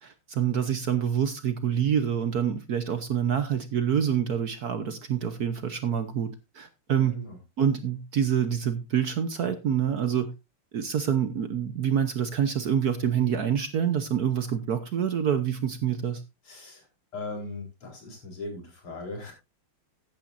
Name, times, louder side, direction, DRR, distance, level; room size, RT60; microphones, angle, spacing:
voice 1, 0.0-7.2 7.6-10.3 10.7-16.2, right 8 dB, 55° right, 10 dB, 1.2 m, -26 dB
voice 2, 6.9-7.4 16.4-16.9 17.1-19.3, left 2 dB, 75° left, 1 dB, 5.1 m, -39 dB
14.5 x 10.5 x 2.6 m, 0.24 s
omnidirectional pair, 2.4 m